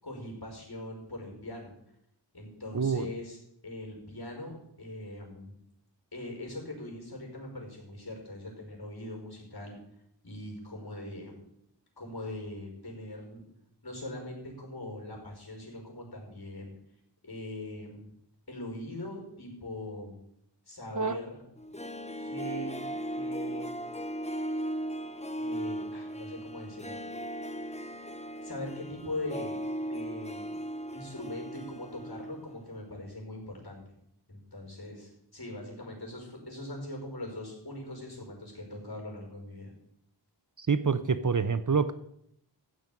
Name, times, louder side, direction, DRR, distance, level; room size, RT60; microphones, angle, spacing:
voice 1, 0.0-1.7 2.3-3.4 3.6-5.5 6.1-9.8 10.2-11.3 12.0-13.4 13.8-16.7 17.2-18.1 18.5-20.2 20.7-21.4 22.2-23.8 25.4-27.0 28.4-30.5 30.9-33.8 34.3-39.7, left 1 dB, 60° left, 0 dB, 5.2 m, -41 dB
voice 2, 2.7-3.1 20.9-21.2 40.6-41.9, right 5 dB, 45° right, 13 dB, 0.7 m, -27 dB
Harp, 21.6-32.6 32.8-32.9, equal, 15° left, 0.9 m, -37 dB
14.5 x 5.3 x 9.1 m, 0.75 s
wide cardioid pair, 40°, 43 cm